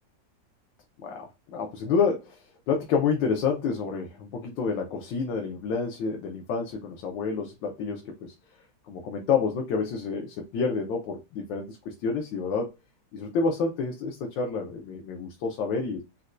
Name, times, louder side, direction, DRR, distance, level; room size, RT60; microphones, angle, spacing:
voice 1, 1.0-8.3 8.9-12.7 13.1-16.0, left 5 dB, 90° left, 2 dB, 1.3 m, -29 dB
4.2 x 2.1 x 2.4 m, 0.26 s
omnidirectional pair, 2.0 m